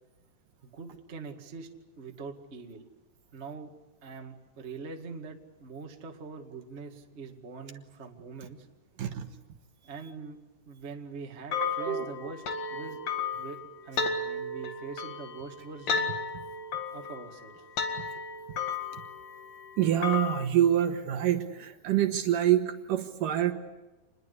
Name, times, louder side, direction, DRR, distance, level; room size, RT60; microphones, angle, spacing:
voice 1, 0.6-1.7 2.0-2.9 3.3-3.7 4.0-8.7 9.8-10.4 10.6-12.4 12.7-13.0 13.4-16.1 16.9-17.7, right 4 dB, 35° right, 3 dB, 1.1 m, -43 dB
sound 1, 11.5-20.5, left 5 dB, 50° left, 2.7 m, -34 dB
voice 2, 11.6-12.1 19.8-23.5, right 11 dB, 65° right, 6 dB, 2.5 m, -26 dB
28.0 x 21.0 x 8.3 m, 1.1 s
omnidirectional pair, 4.6 m